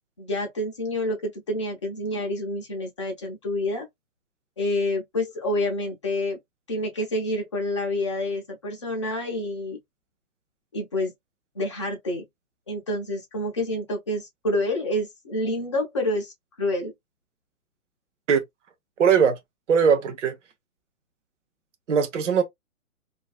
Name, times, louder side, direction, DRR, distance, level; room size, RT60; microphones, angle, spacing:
voice 1, 0.2-3.9 4.6-6.4 6.7-9.8 10.7-11.1 11.5-12.3 12.7-16.3 16.6-16.9, left 1 dB, 20° left, 0.5 m, -28 dB
voice 2, 19.0-19.4 19.7-20.3 21.9-22.4, right 6 dB, 55° right, 0.6 m, -20 dB
2.4 x 2.2 x 2.3 m
figure-of-eight pair, 125°, 44 cm